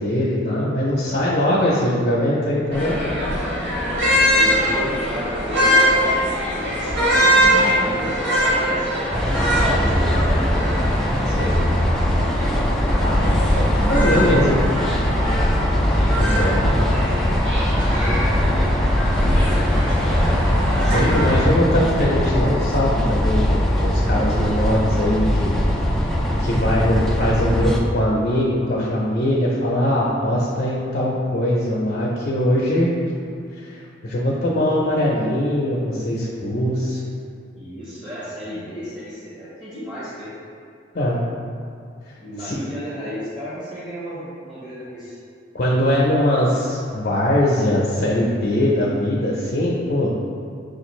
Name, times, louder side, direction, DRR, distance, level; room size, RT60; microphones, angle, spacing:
voice 1, 0.0-3.0 11.3-11.6 13.0-14.6 16.2-16.7 20.8-25.6 26.4-32.9 33.6-37.0 40.9-41.2 42.4-42.5 45.5-50.1, left 1 dB, 55° left, -5 dB, 0.6 m, -21 dB
voice 2, 1.0-1.6 3.7-6.1 6.4-10.7 15.9-19.6 19.9-20.4 37.5-40.3 42.2-45.2, equal, 30° right, -10 dB, 1.0 m, -34 dB
sound 1, 2.7-21.4, equal, 65° right, 1.4 m, -22 dB
sound 2, 9.1-27.8, equal, ahead, 0.3 m, -20 dB
6.3 x 2.5 x 3.1 m, 2.5 s
head